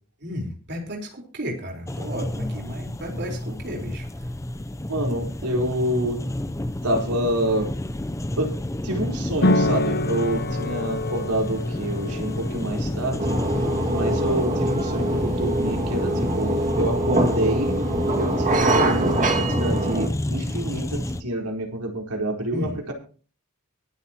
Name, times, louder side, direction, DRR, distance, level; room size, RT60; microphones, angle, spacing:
voice 1, 0.2-4.1 22.5-22.7, equal, 50° right, 0 dB, 4.3 m, -33 dB
sound 1, 1.9-21.2, left 1 dB, 15° left, 0.6 m, -30 dB
voice 2, 4.9-6.2 6.8-7.7 8.4-8.5 8.8-13.3 13.9-17.7 18.2-22.9, right 1 dB, 85° right, 1 dB, 4.3 m, -27 dB
sound 2, 9.4-16.7, left 2 dB, 50° left, 0.9 m, -28 dB
sound 3, 13.2-20.1, right 1 dB, 35° right, 2.2 m, -23 dB
23.5 x 8.2 x 3.0 m, 0.39 s
head